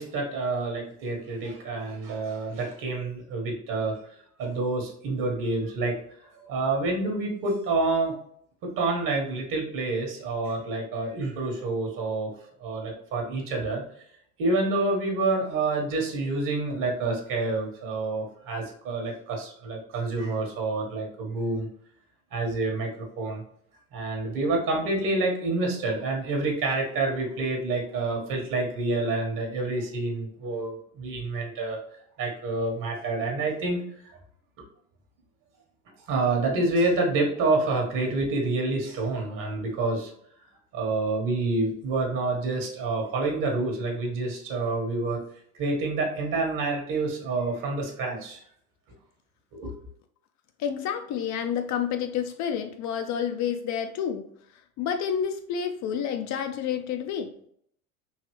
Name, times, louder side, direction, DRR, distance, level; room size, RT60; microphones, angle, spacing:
voice 1, 0.0-4.0 4.4-6.0 6.4-8.1 8.6-12.3 12.6-13.8 14.4-21.7 22.3-23.4 23.9-31.8 32.2-34.2 36.1-40.1 40.7-45.2 45.5-48.4 49.5-49.7, right 3 dB, 50° right, 1 dB, 1.5 m, -28 dB
voice 2, 50.6-54.3 54.8-57.3, left 8 dB, 45° left, 7 dB, 0.5 m, -29 dB
3.9 x 2.8 x 3.1 m, 0.67 s
hypercardioid pair, 85°, 41 cm